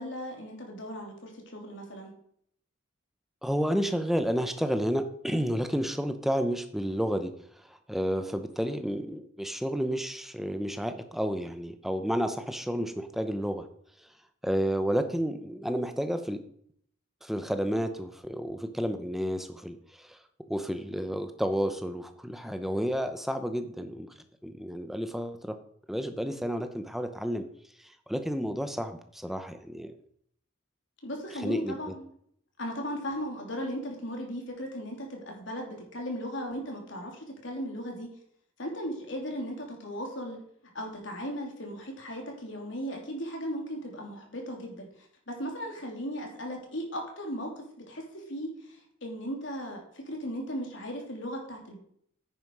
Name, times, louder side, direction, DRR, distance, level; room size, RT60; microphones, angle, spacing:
voice 1, 0.0-2.1 31.0-32.1 32.6-38.1 38.6-40.4 40.7-51.8, equal, 65° left, 0 dB, 3.3 m, -37 dB
voice 2, 3.4-7.3 7.9-13.7 14.4-16.4 17.2-20.2 20.5-24.1 24.4-25.5 25.9-27.5 28.1-29.9 31.4-31.9, equal, ahead, 8 dB, 0.8 m, -31 dB
10.0 x 9.5 x 4.8 m, 0.67 s
head